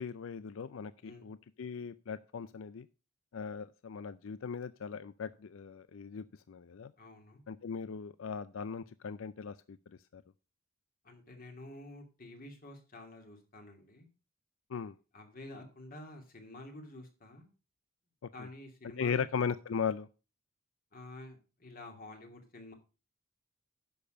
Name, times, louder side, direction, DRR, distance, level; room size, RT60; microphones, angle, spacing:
voice 1, 0.0-2.9 3.3-6.9 7.5-9.8 10.1-10.2 14.7-14.9 18.2-18.5 19.0-20.1, left 6 dB, 70° left, 15 dB, 0.4 m, -38 dB
voice 2, 7.0-7.4 11.0-14.1 15.1-17.5 18.3-19.2 20.9-22.7, left 1 dB, 45° left, 4 dB, 2.6 m, -49 dB
10.5 x 6.8 x 5.2 m, 0.32 s
head